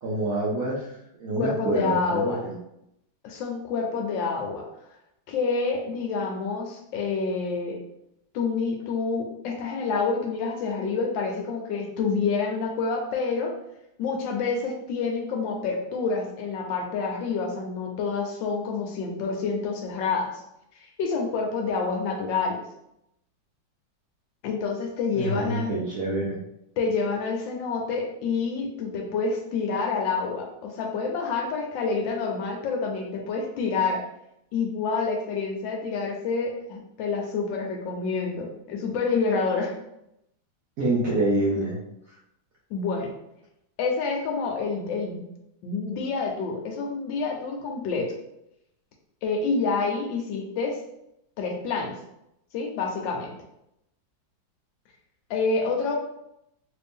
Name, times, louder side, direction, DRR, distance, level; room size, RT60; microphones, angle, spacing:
voice 1, 0.0-2.5 25.2-26.4 40.8-41.8, right 2 dB, 65° right, -6 dB, 0.8 m, -26 dB
voice 2, 1.4-2.4 3.2-4.6 5.3-7.8 8.3-13.5 14.0-20.4 21.0-22.6 24.4-25.7 26.8-34.0 34.5-39.7 42.7-43.1 43.8-45.2 45.6-48.1 49.2-50.8 51.4-51.9 52.5-53.4 55.3-56.0, left 4 dB, 75° left, 2 dB, 1.3 m, -28 dB
3.3 x 2.5 x 3.5 m, 0.81 s
omnidirectional pair, 2.1 m